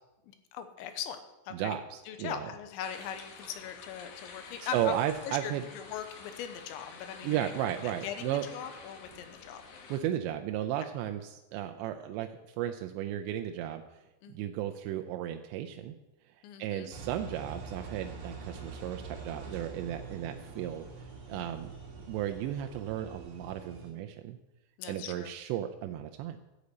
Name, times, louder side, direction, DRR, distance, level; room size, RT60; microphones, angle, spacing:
voice 1, 0.3-1.2 1.5-1.8 2.1-4.9 5.2-7.5 7.8-9.6 14.2-14.4 16.4-16.9 21.3-21.5 24.8-25.3, left 9 dB, 80° left, 8 dB, 3.0 m, -40 dB
voice 2, 1.5-2.5 4.7-5.6 7.2-8.4 9.9-12.3 12.6-13.8 14.3-16.0 16.6-20.9 21.3-21.7 22.1-24.4 24.9-26.4, right 11 dB, 85° right, 6 dB, 2.6 m, -34 dB
sound 1, 2.8-10.0, left 4 dB, 65° left, 2.0 m, -49 dB
Engine, 16.9-23.9, right 4 dB, 35° right, 2.4 m, -45 dB
11.5 x 8.2 x 8.1 m, 1.0 s
omnidirectional pair, 5.6 m